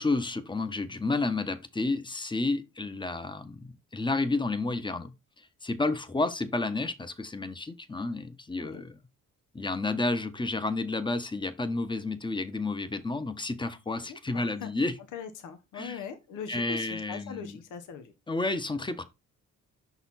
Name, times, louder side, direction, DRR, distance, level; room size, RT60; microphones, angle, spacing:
voice 1, 0.0-9.0 9.5-14.9 15.7-16.0 16.5-17.6 18.3-19.0, left 2 dB, 15° left, 0.9 m, -31 dB
voice 2, 14.1-14.7 15.1-18.1, left 6 dB, 80° left, 1.0 m, -41 dB
5.9 x 4.1 x 4.1 m
cardioid pair, 90°, 30 cm